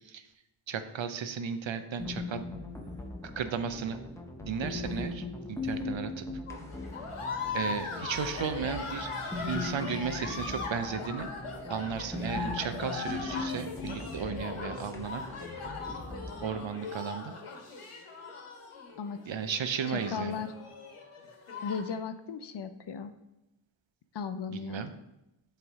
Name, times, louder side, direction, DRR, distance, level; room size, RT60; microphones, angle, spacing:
voice 1, 0.7-2.4 3.4-4.0 4.4-6.3 7.5-9.1 9.5-11.3 11.7-15.2 16.4-17.4 19.3-20.4 24.5-24.9, right 7 dB, 65° right, 10 dB, 0.6 m, -35 dB
sound 1, 2.0-16.5, left 3 dB, 5° left, 0.7 m, -40 dB
sound 2, 6.5-21.9, left 4 dB, 80° left, 1.2 m, -39 dB
voice 2, 19.9-20.5 21.6-23.1 24.1-24.8, left 6 dB, 55° left, 10 dB, 0.5 m, -36 dB
7.7 x 3.4 x 3.6 m, 0.91 s
wide cardioid pair, 60°, 50 cm